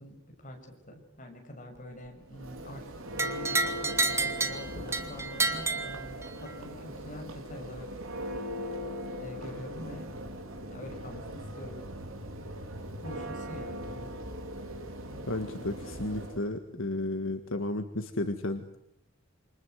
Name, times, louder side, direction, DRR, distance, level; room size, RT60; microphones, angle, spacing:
voice 1, 0.0-7.9 9.2-10.1 10.7-11.8 13.0-14.2 16.6-16.8, left 1 dB, 35° left, 2 dB, 6.7 m, -45 dB
Church bell, 2.2-16.5, equal, 65° right, 3.5 m, -40 dB
sound 1, 3.2-6.6, right 3 dB, 10° right, 1.7 m, -30 dB
voice 2, 15.3-18.6, left 2 dB, 60° left, 7 dB, 1.7 m, -33 dB
28.0 x 25.5 x 8.1 m, 0.76 s
head